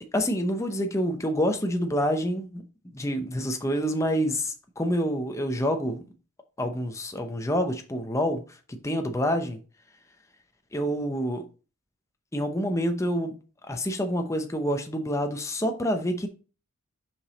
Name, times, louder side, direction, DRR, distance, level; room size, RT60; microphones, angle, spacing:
voice 1, 0.1-2.6 2.9-6.0 6.6-8.4 8.7-9.6 10.7-11.4 12.3-13.3 13.7-16.3, equal, 15° left, 0.7 m, -27 dB
5.9 x 5.0 x 4.0 m
head